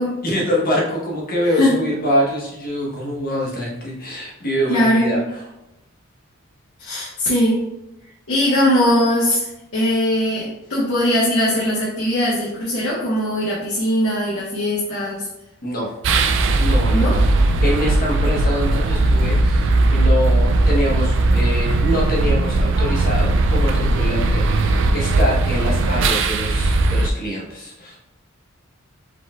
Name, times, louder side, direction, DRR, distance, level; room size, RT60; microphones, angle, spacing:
voice 1, 0.2-5.4 15.6-15.9 16.6-28.0, equal, 45° left, -3 dB, 1.2 m, -25 dB
voice 2, 4.7-5.2 6.8-7.6 8.3-15.3 16.9-17.2, left 1 dB, 85° left, -8 dB, 1.3 m, -20 dB
sound 1, 16.0-27.1, right 2 dB, 60° right, 0.4 m, -18 dB
4.9 x 3.9 x 2.4 m, 0.89 s
head